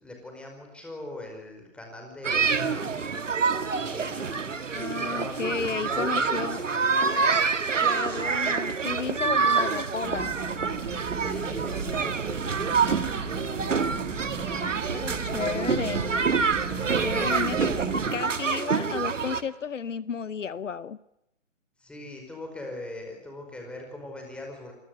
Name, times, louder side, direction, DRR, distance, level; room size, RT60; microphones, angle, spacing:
voice 1, 0.0-4.5 4.9-6.8 11.1-13.1 17.5-18.0 21.8-24.7, left 1 dB, 5° left, 2 dB, 4.9 m, -42 dB
sound 1, 2.2-19.4, right 5 dB, 70° right, 2.1 m, -27 dB
voice 2, 4.7-6.6 7.8-10.3 14.9-16.0 16.9-21.0, left 6 dB, 75° left, 18 dB, 0.9 m, -33 dB
sound 2, 10.0-18.1, right 5 dB, 20° right, 6.9 m, -37 dB
27.0 x 19.5 x 8.0 m, 0.84 s
figure-of-eight pair, 145°, 38 cm